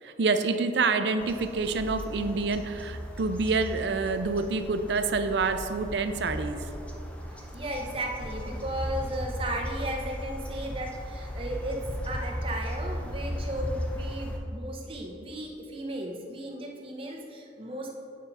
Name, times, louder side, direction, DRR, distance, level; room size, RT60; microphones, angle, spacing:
voice 1, 0.0-6.7, right 4 dB, 75° right, 9 dB, 0.5 m, -27 dB
sound 1, 1.2-14.4, equal, 5° left, 0.6 m, -36 dB
voice 2, 7.4-17.9, right 1 dB, 30° right, 0 dB, 0.9 m, -35 dB
9.3 x 5.5 x 4.1 m, 2.8 s
head